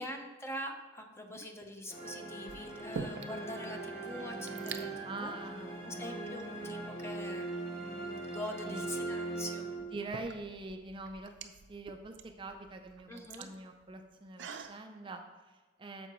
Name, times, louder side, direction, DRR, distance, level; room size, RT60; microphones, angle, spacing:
voice 1, 0.0-5.3 5.8-9.7 13.1-13.5, left 1 dB, 15° left, 4 dB, 0.7 m, -44 dB
sound 1, 1.3-1.7 2.5-3.5 3.8-3.9 4.1-4.8 5.6-5.8 6.4-7.3 9.0-9.1 9.8-14.8, right 5 dB, 75° right, 0.5 m, -46 dB
sound 2, 1.9-10.2, right 2 dB, 50° left, 2.4 m, -40 dB
voice 2, 5.0-6.2 8.6-9.2 9.9-16.1, right 2 dB, 25° right, 5 dB, 0.4 m, -45 dB
9.2 x 6.8 x 3.0 m, 1.3 s
head